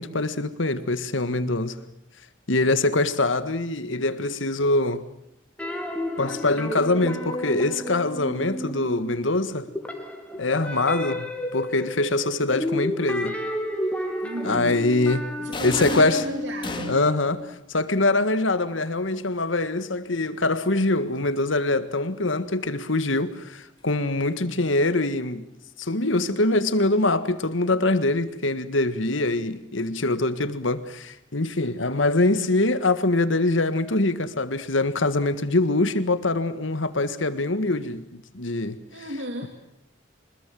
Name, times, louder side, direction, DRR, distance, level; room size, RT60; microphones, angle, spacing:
voice 1, 0.0-1.8 2.5-5.0 6.2-9.7 10.4-13.4 14.4-15.3 15.6-16.2 16.9-25.5 25.8-39.1, left 2 dB, 85° left, 1.8 m, -24 dB
sound 1, 5.6-9.3 9.6-17.4, left 1 dB, 5° left, 2.6 m, -32 dB
voice 2, 14.2-17.1 38.9-39.5, right 1 dB, 75° right, 2.5 m, -34 dB
sound 2, 15.5-17.3, left 3 dB, 25° left, 2.3 m, -33 dB
25.0 x 21.0 x 7.7 m
head